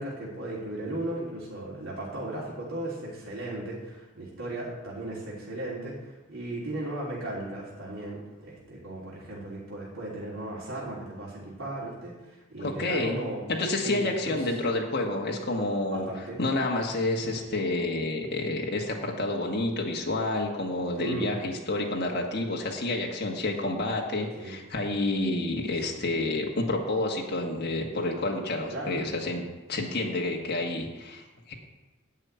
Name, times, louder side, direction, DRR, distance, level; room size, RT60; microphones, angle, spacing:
voice 1, 0.0-13.4 13.8-14.5 15.9-16.4 21.0-21.3 24.3-24.6 25.7-25.9 28.7-29.0, right 1 dB, 80° right, -5 dB, 3.2 m, -36 dB
voice 2, 12.6-13.2 13.5-16.1 16.4-29.4 29.7-31.5, left 2 dB, 50° left, 0 dB, 1.6 m, -29 dB
11.0 x 5.8 x 8.8 m, 1.1 s
head